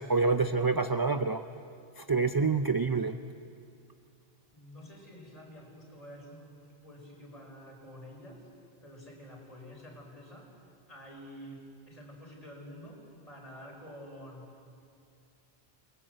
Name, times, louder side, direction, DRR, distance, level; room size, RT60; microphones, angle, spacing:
voice 1, 0.0-1.4 2.0-3.2, right 4 dB, 30° right, 9 dB, 0.4 m, -27 dB
voice 2, 4.5-8.5 8.8-10.5 10.9-14.7, equal, 35° left, -1 dB, 5.0 m, -49 dB
28.0 x 20.5 x 7.9 m, 2.4 s
omnidirectional pair, 1.1 m